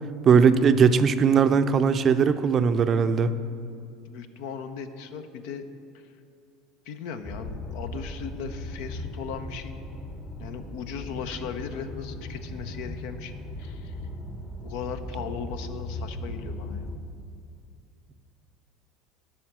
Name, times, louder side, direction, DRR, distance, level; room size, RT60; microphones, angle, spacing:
voice 1, 0.2-3.3, right 6 dB, 40° right, 11 dB, 0.5 m, -19 dB
voice 2, 4.1-5.7 6.9-9.8 10.4-14.0 14.6-17.0, left 7 dB, 70° left, 9 dB, 0.6 m, -37 dB
sound 1, 7.2-17.0, left 1 dB, 30° left, 1.1 m, -37 dB
8.7 x 5.6 x 7.3 m, 2.4 s
hypercardioid pair, 80°, 0 cm